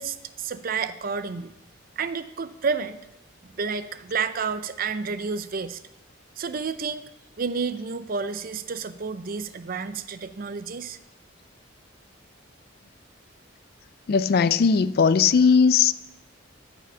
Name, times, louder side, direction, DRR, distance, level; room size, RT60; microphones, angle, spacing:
voice 1, 0.0-1.5 2.0-3.0 3.4-5.8 6.4-7.1 7.4-11.0, right 5 dB, 45° right, 0.5 m, -30 dB
voice 2, 14.1-15.9, left 6 dB, 50° left, 0.3 m, -18 dB
12.5 x 5.0 x 5.6 m
head